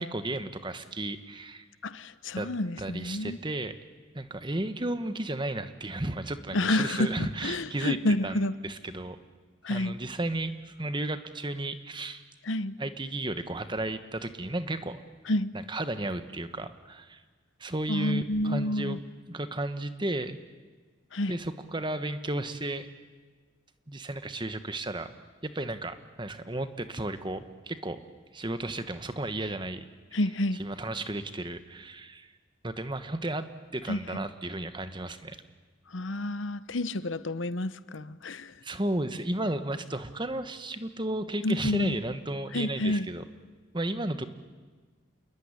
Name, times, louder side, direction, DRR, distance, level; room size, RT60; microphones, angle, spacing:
voice 1, 0.0-1.7 2.4-2.5 2.8-3.7 4.1-8.0 8.2-9.2 9.7-12.2 12.8-15.0 15.5-17.2 17.6-19.0 19.3-20.4 21.3-22.9 23.9-25.1 25.4-28.0 28.3-29.8 30.1-30.2 30.6-32.3 32.6-33.5 33.7-35.4 38.6-43.2 43.7-44.3, right 1 dB, 25° right, 10 dB, 1.4 m, -33 dB
voice 2, 1.8-3.4 6.5-7.2 7.4-8.5 9.6-9.9 12.4-12.7 15.3-15.5 17.9-19.0 21.1-21.4 30.1-30.6 33.9-34.0 35.9-38.5 41.4-42.0 42.5-43.1, left 1 dB, 70° left, 15 dB, 0.9 m, -29 dB
28.5 x 21.0 x 9.9 m, 1.4 s
head